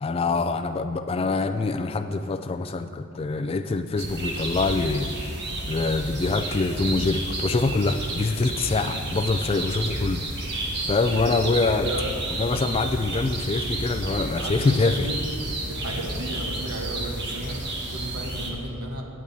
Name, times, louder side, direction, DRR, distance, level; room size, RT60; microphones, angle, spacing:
voice 1, 0.0-5.1 5.7-10.2 10.9-11.9 12.4-15.1, left 3 dB, 25° left, 7 dB, 0.3 m, -25 dB
sound 1, 4.0-18.5, right 1 dB, 50° right, 1.4 m, -31 dB
voice 2, 11.1-11.5 11.8-12.1 14.4-15.2 15.7-17.6 17.9-19.0, equal, 85° right, 1 dB, 1.2 m, -34 dB
17.5 x 8.6 x 2.8 m, 2.5 s
head